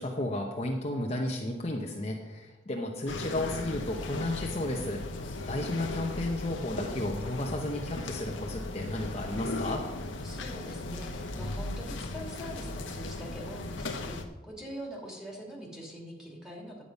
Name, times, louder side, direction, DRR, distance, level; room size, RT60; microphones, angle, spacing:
voice 1, 0.0-5.0 5.5-9.8, left 1 dB, 35° left, 0 dB, 0.9 m, -33 dB
sound 1, 3.1-14.3, left 2 dB, 85° left, 1.0 m, -37 dB
voice 2, 10.2-14.2 14.4-16.8, equal, 5° right, -3 dB, 2.5 m, -43 dB
9.9 x 8.6 x 5.3 m, 1.1 s
head